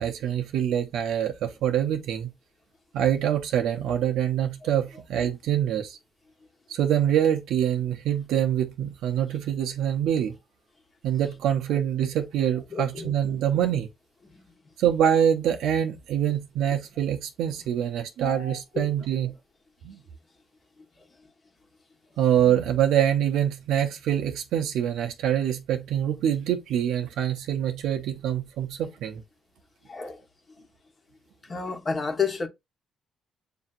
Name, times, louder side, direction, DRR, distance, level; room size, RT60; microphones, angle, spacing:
voice 1, 0.0-2.3 2.9-6.0 6.7-10.4 11.0-13.9 14.8-19.3 19.8-20.0 22.2-29.2, right 10 dB, 85° right, 0.7 m, -25 dB
voice 2, 12.7-13.1 14.3-14.4 18.7-18.9 29.9-30.2 31.5-32.5, left 5 dB, 35° left, 1.1 m, -30 dB
6.7 x 2.7 x 2.4 m
cardioid pair, 90°, 0 cm